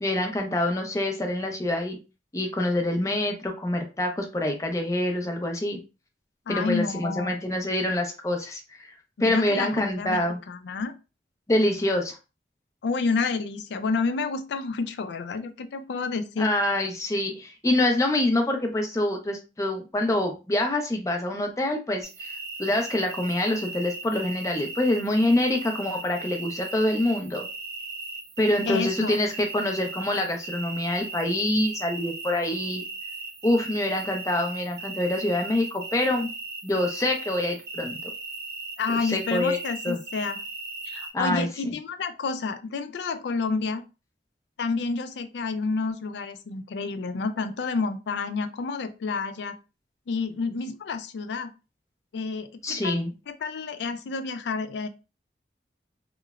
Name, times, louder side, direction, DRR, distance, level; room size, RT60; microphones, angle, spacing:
voice 1, 0.0-2.0 2.3-5.8 6.5-8.9 9.2-10.4 11.5-12.2 16.4-22.3 22.6-27.5 28.4-32.8 33.4-36.3 36.6-38.0 39.0-39.6 39.8-40.0 41.1-41.7 52.6-53.1, left 1 dB, 20° left, 3 dB, 0.4 m, -26 dB
voice 2, 6.5-7.5 9.2-10.2 10.5-10.9 12.8-16.5 28.7-29.2 38.8-40.4 40.9-43.8 44.6-49.6 50.1-51.5 52.1-54.9, left 4 dB, 80° left, 9 dB, 0.3 m, -29 dB
sound 1, 22.0-41.1, right 3 dB, 70° right, 0.6 m, -37 dB
2.9 x 2.0 x 2.3 m, 0.30 s
head